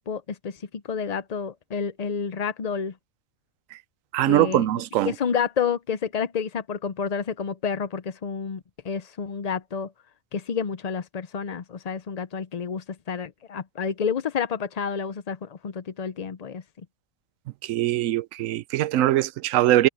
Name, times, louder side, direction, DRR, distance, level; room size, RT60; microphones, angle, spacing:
voice 1, 0.1-0.6 0.9-2.9 4.3-4.7 5.1-9.9 10.3-16.6, left 6 dB, 50° left, 0.5 m, -29 dB
voice 2, 4.1-5.1 17.6-19.9, right 14 dB, 80° right, 1.0 m, -22 dB
omnidirectional pair, 1.4 m